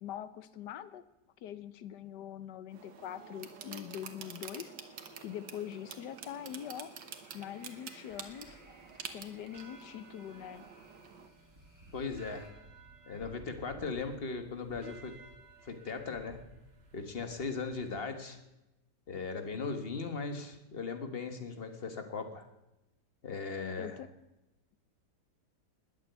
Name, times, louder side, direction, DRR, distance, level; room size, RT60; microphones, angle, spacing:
voice 1, 0.0-1.0 1.4-4.7 5.2-6.9 7.3-8.6 9.1-10.6 23.8-24.1, left 10 dB, 80° left, 14 dB, 1.4 m, -43 dB
sound 1, 2.7-11.3, right 6 dB, 85° right, 1.8 m, -48 dB
sound 2, 5.0-12.5, equal, 10° right, 3.4 m, -62 dB
sound 3, 8.1-18.0, right 2 dB, 35° right, 1.9 m, -56 dB
voice 2, 11.9-12.5 13.1-15.2 15.6-16.4 16.9-18.4 19.1-22.4 23.2-24.0, left 4 dB, 35° left, 7 dB, 1.6 m, -38 dB
20.0 x 8.0 x 8.2 m, 0.96 s
omnidirectional pair, 1.8 m